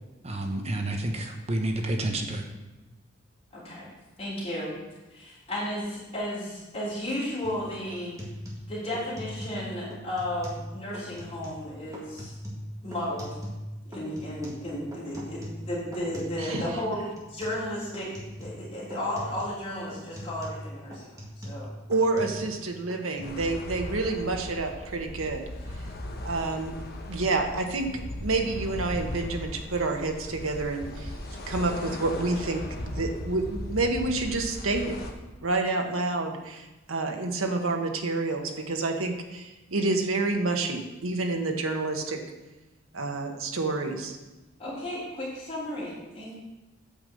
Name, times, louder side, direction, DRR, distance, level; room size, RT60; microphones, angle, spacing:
voice 1, 0.2-2.4, right 1 dB, 30° right, 4 dB, 0.9 m, -29 dB
voice 2, 3.5-3.9 4.2-4.7 5.1-8.2 8.7-12.3 12.8-13.4 13.8-18.1 18.4-21.7 22.2-22.4 44.6-46.3, left 1 dB, 30° left, -9 dB, 3.3 m, -34 dB
sound 1, 7.4-7.6 7.9-9.6 9.9-10.7 10.9-11.6 11.9-13.7 13.9-16.7 16.9-17.6 17.9-18.7 18.9-19.6 19.9-22.6 22.9-23.5, equal, 15° right, 2.1 m, -41 dB
voice 3, 16.4-16.7 21.9-25.4 26.2-26.7 27.1-31.1 31.5-35.0 35.4-42.2 42.9-44.2, right 3 dB, 90° right, 4 dB, 1.3 m, -28 dB
sound 2, 23.2-35.1, left 1 dB, 50° left, 1.2 m, -37 dB
8.8 x 5.5 x 7.7 m, 1.1 s
head